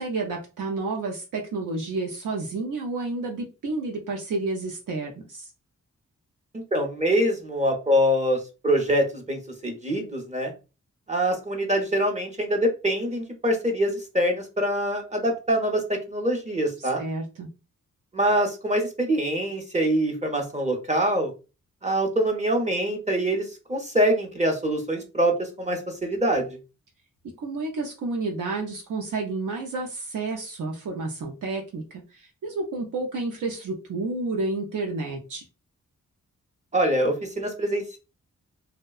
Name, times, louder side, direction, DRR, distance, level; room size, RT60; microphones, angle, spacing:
voice 1, 0.0-5.5 16.8-17.5 27.4-35.4, right 3 dB, 80° right, 1 dB, 0.5 m, -30 dB
voice 2, 6.5-10.5 11.1-17.0 18.1-21.3 21.8-26.4 36.7-38.0, right 1 dB, 20° right, 3 dB, 0.6 m, -24 dB
2.7 x 2.1 x 2.3 m, 0.31 s
wide cardioid pair, 85°, 31 cm